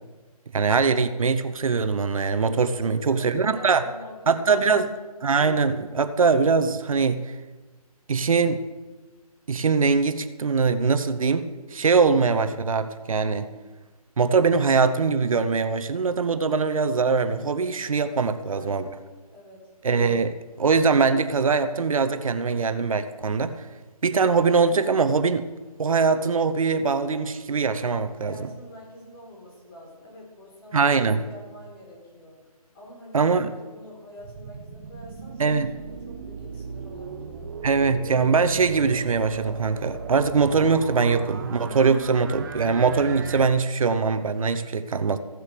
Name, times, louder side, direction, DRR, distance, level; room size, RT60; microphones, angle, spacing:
voice 1, 0.5-3.8 4.3-4.9 5.2-7.2 8.1-8.6 9.5-13.5 14.2-18.8 19.8-23.7 24.0-25.5 25.8-28.3 30.7-31.2 33.1-33.5 35.4-35.7 37.6-45.2, right 5 dB, 60° right, 11 dB, 0.8 m, -22 dB
voice 2, 2.7-4.9 18.3-19.0 19.3-19.7 28.2-30.9 31.3-32.4 32.7-37.5, left 1 dB, 35° left, -2 dB, 5.0 m, -46 dB
sound 1, 34.2-43.5, right 5 dB, 30° right, 0.9 m, -37 dB
15.0 x 7.9 x 6.7 m, 1.3 s
hypercardioid pair, 160°, 20 cm